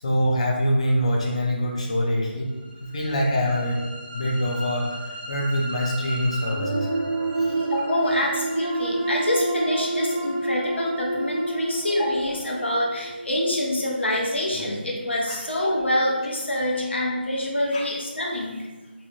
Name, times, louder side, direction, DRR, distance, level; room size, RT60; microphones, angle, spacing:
voice 1, 0.0-2.6 2.9-3.9 4.1-6.9 7.3-7.5 15.3-15.4 17.7-17.9, equal, 35° left, -2 dB, 0.5 m, -24 dB
sound 1, 2.6-14.7, right 2 dB, 50° right, 0.6 m, -30 dB
voice 2, 7.6-18.7, left 1 dB, 80° left, -2 dB, 0.8 m, -26 dB
2.6 x 2.1 x 2.9 m, 1.3 s
figure-of-eight pair, 175°, 6 cm